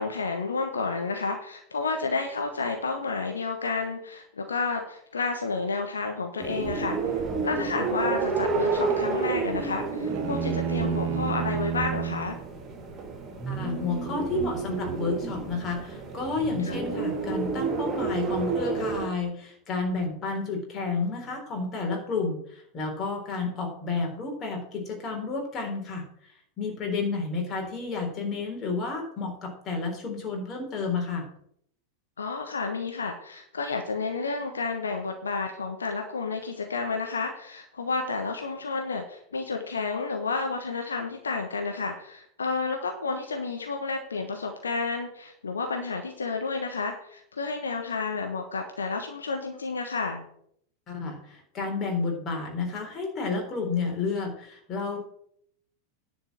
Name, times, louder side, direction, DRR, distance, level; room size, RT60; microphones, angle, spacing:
voice 1, 0.0-7.0 7.4-12.4 16.6-16.8 32.2-50.2, left 4 dB, 70° left, 4 dB, 1.2 m, -31 dB
sound 1, 6.4-19.1, right 4 dB, 25° right, 3.0 m, -30 dB
sound 2, 10.1-12.3, right 8 dB, 45° right, 1.4 m, -30 dB
voice 2, 13.5-26.1 26.6-31.3 50.9-55.0, left 4 dB, 30° left, 2 dB, 4.0 m, -31 dB
10.5 x 5.2 x 7.5 m, 0.67 s
figure-of-eight pair, 90°, 0 cm